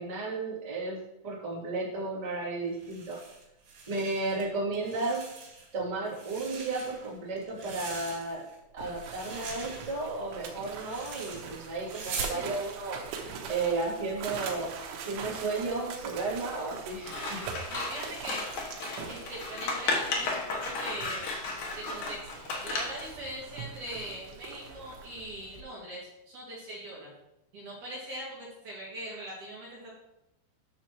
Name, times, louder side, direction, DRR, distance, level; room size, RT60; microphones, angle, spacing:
voice 1, 0.0-3.2 3.9-5.2 5.7-8.4 8.7-13.0 13.5-17.5, right 3 dB, 10° right, -8 dB, 2.0 m, -33 dB
sound 1, 2.7-4.4 4.7-5.7 6.1-8.6 8.9-12.4, right 4 dB, 70° right, 4.3 m, -42 dB
sound 2, 8.8-25.6, right 6 dB, 90° right, 3.6 m, -43 dB
Scissors, 17.0-23.1, left 3 dB, 80° left, 1.7 m, -34 dB
voice 2, 17.7-18.4 19.1-21.3 21.8-27.1 27.5-29.9, equal, 50° right, -7 dB, 3.1 m, -41 dB
11.5 x 6.6 x 3.1 m, 0.89 s
omnidirectional pair, 5.5 m